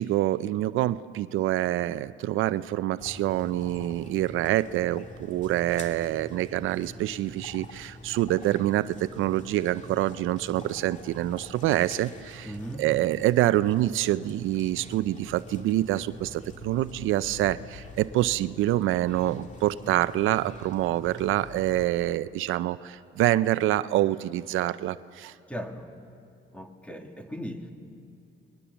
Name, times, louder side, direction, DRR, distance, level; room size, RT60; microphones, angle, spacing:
voice 1, 0.0-25.3, right 14 dB, 85° right, 15 dB, 0.5 m, -26 dB
sound 1, 3.0-21.9, left 2 dB, 40° left, 2.2 m, -45 dB
voice 2, 12.4-12.9 25.5-25.9 26.5-27.7, equal, 5° left, 4 dB, 2.3 m, -37 dB
30.0 x 21.0 x 7.0 m, 2.4 s
cardioid pair, 90°, 20 cm